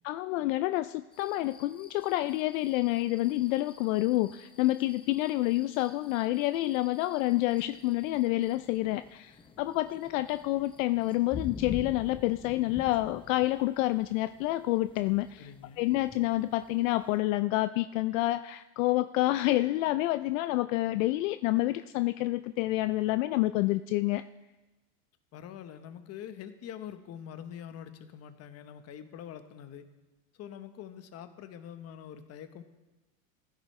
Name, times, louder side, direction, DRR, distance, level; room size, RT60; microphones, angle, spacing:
voice 1, 0.0-15.5 15.8-24.2, left 17 dB, 70° left, 12 dB, 0.5 m, -28 dB
sound 1, 1.1-17.2, left 5 dB, 15° left, 0.6 m, -48 dB
voice 2, 15.4-15.8 25.3-29.9 30.3-32.6, left 9 dB, 35° left, 9 dB, 1.1 m, -45 dB
15.0 x 12.5 x 3.2 m, 1.1 s
supercardioid pair, 120°, 41 cm